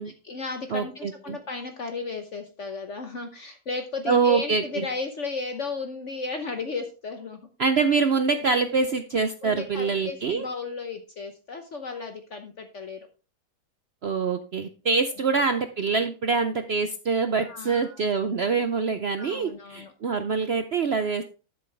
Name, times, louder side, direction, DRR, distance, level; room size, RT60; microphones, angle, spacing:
voice 1, 0.0-7.4 8.3-8.5 9.4-13.1 17.4-18.0 19.2-19.9, left 4 dB, 50° left, 6 dB, 1.2 m, -34 dB
voice 2, 0.7-1.4 4.1-4.9 7.6-10.5 14.0-21.2, right 4 dB, 60° right, 8 dB, 0.7 m, -25 dB
12.0 x 6.9 x 3.3 m, 0.34 s
omnidirectional pair, 1.8 m